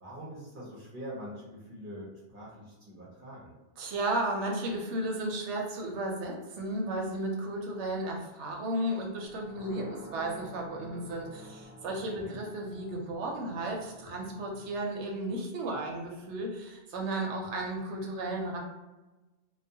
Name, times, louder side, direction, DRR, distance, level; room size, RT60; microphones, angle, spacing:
voice 1, 0.0-3.5 12.2-12.4, equal, 55° right, -6 dB, 0.7 m, -44 dB
voice 2, 3.8-18.6, right 1 dB, 80° right, 0 dB, 0.9 m, -34 dB
sound 1, 9.2-14.8, equal, 10° right, 0.4 m, -50 dB
2.3 x 2.2 x 2.6 m, 1.1 s
omnidirectional pair, 1.2 m